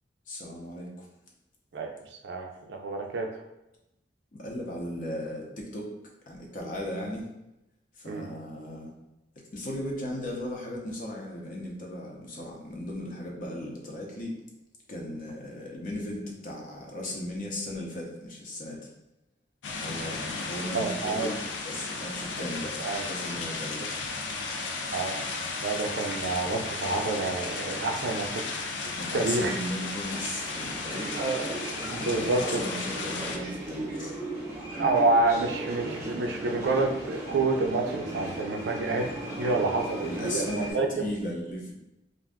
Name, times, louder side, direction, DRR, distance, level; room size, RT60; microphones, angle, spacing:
voice 1, 0.3-1.1 4.3-5.9 6.3-7.3 8.0-8.9 9.5-14.4 14.9-18.8 19.7-22.8 23.1-23.9 28.9-31.2 31.9-34.1 40.0-41.7, left 1 dB, 50° left, -1 dB, 0.6 m, -36 dB
voice 2, 2.2-3.3 8.1-8.3 20.7-21.3 22.8-23.0 24.9-25.2 25.6-28.4 29.1-29.5 31.1-31.5 31.8-32.6 34.8-41.1, right 3 dB, 65° right, 3 dB, 0.4 m, -28 dB
sound 1, 19.6-33.4, left 3 dB, 90° left, 0.4 m, -35 dB
sound 2, 30.0-40.7, right 1 dB, 15° right, 0.7 m, -37 dB
2.5 x 2.2 x 3.4 m, 0.91 s
head